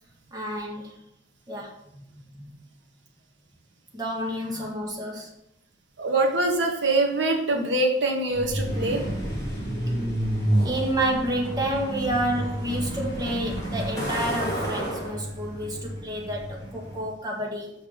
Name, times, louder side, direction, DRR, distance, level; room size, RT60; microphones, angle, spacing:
voice 1, 0.3-1.0 1.5-2.0 2.4-2.6 3.9-5.3 8.6-8.7 10.6-17.7, right 1 dB, 20° right, -1 dB, 1.8 m, -30 dB
voice 2, 6.0-9.0, right 2 dB, 85° right, 2 dB, 1.6 m, -24 dB
Truck, 8.3-17.0, right 1 dB, 20° left, 3.3 m, -30 dB
6.5 x 6.2 x 6.6 m, 0.78 s
head